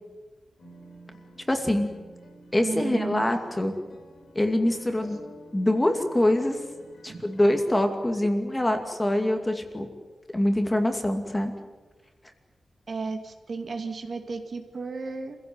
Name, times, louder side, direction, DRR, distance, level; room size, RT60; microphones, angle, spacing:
sound 1, 0.6-7.6, equal, 65° left, 6.5 m, -49 dB
voice 1, 1.5-1.9 2.5-3.7 4.3-5.2 5.5-6.7 7.0-9.9 10.3-11.5, left 1 dB, 15° left, 5 dB, 2.4 m, -24 dB
voice 2, 2.6-3.3 7.1-7.2 12.9-15.4, right 4 dB, 50° right, 6 dB, 2.4 m, -33 dB
27.0 x 16.5 x 9.6 m, 1.3 s
wide cardioid pair, 125°, 0 cm